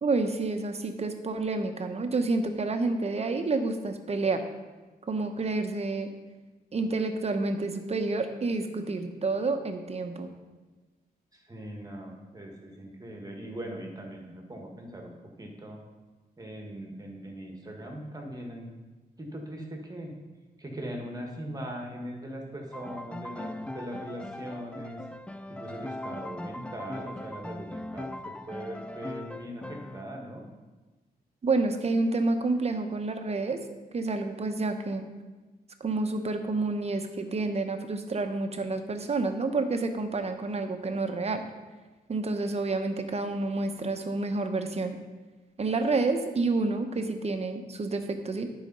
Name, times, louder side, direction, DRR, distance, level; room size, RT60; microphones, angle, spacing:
voice 1, 0.0-4.4 5.1-6.1 6.7-10.3 31.4-33.6 33.9-35.1 35.8-41.4 42.1-45.0 45.6-48.5, right 3 dB, 40° right, 7 dB, 0.8 m, -29 dB
voice 2, 11.3-15.8 16.4-18.8 19.2-20.1 20.6-25.0 25.5-30.5, equal, 25° right, 1 dB, 1.5 m, -40 dB
Piano, 22.7-30.0, left 1 dB, 5° left, 0.3 m, -40 dB
10.5 x 4.9 x 5.5 m, 1.2 s
wide cardioid pair, 120°, 16 cm